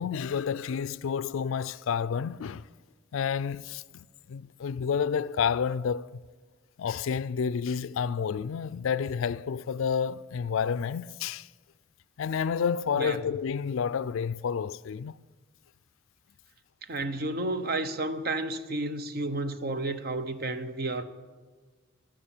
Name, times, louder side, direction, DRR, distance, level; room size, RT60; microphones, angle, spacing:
voice 1, 0.0-2.7 3.1-6.2 6.8-11.5 12.2-15.2, left 7 dB, 70° left, 0.4 m, -30 dB
voice 2, 12.9-13.3 16.9-21.0, right 2 dB, 45° right, 0.8 m, -31 dB
14.5 x 11.5 x 7.1 m
head